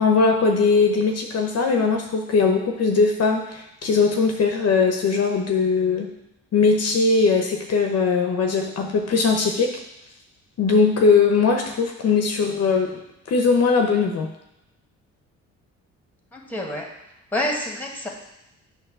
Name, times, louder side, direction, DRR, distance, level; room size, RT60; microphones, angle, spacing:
voice 1, 0.0-6.1 6.5-9.7 10.6-12.9 13.3-14.3, left 4 dB, 55° left, 3 dB, 0.9 m, -20 dB
voice 2, 16.3-16.9 17.3-18.1, left 1 dB, 5° left, 0 dB, 1.6 m, -27 dB
7.9 x 3.0 x 6.1 m, 0.88 s
cardioid pair, 90°, 30 cm